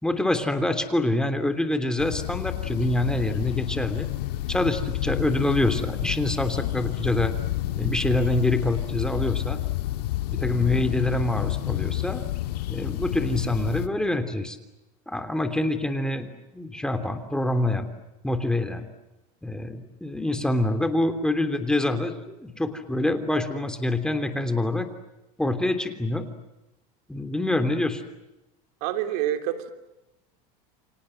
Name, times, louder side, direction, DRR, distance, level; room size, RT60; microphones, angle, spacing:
voice 1, 0.0-4.1 4.5-7.3 7.7-9.6 10.3-12.2 12.7-14.6 15.1-17.9 18.2-18.8 19.4-24.9 25.4-26.3 27.1-28.0, left 1 dB, 5° left, 8 dB, 3.2 m, -26 dB
sound 1, 2.0-13.9, left 14 dB, 90° left, 1.7 m, -29 dB
voice 2, 28.8-29.7, right 12 dB, 75° right, 8 dB, 3.2 m, -27 dB
29.5 x 25.5 x 7.9 m, 0.97 s
supercardioid pair, 125°, 20 cm